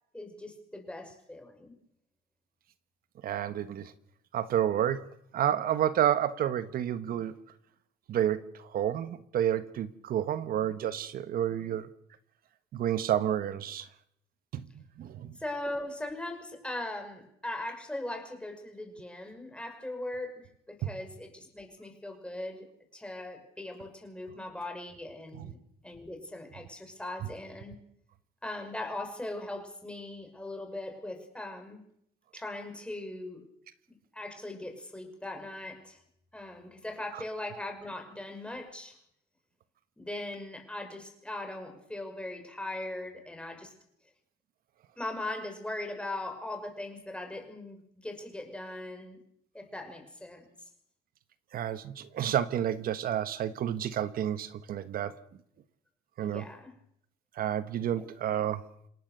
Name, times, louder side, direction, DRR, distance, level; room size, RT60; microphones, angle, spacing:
voice 1, 0.1-1.7 15.4-22.7 22.9-25.6 25.8-27.8 28.4-31.8 32.3-33.4 34.1-36.0 36.3-39.0 40.0-43.7 45.0-49.2 49.5-50.5 56.2-56.7 58.0-58.1, left 1 dB, 5° left, 4 dB, 6.0 m, -39 dB
voice 2, 3.2-3.9 4.3-5.0 5.3-7.3 8.1-11.9 12.7-13.9 14.5-14.7 15.0-15.4 20.8-20.9 25.4-25.5 37.1-37.2 51.5-55.2 56.2-56.4 57.3-58.6, right 10 dB, 60° right, 13 dB, 1.3 m, -30 dB
28.0 x 18.0 x 6.8 m, 0.71 s
cardioid pair, 110°, 17 cm